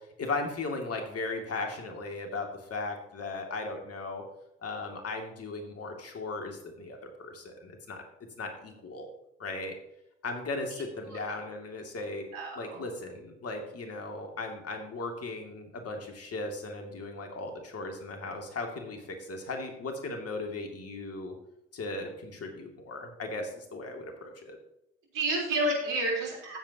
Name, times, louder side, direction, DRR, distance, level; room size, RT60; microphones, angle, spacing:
voice 1, 0.2-4.2 4.6-8.0 8.4-9.1 9.4-9.7 10.2-12.3 12.5-21.3 21.7-24.6, left 3 dB, 45° left, 3 dB, 2.5 m, -37 dB
voice 2, 12.3-12.8 25.1-26.6, right 1 dB, 70° right, -2 dB, 4.0 m, -30 dB
15.5 x 7.9 x 2.9 m, 0.82 s
hypercardioid pair, 50°, 33 cm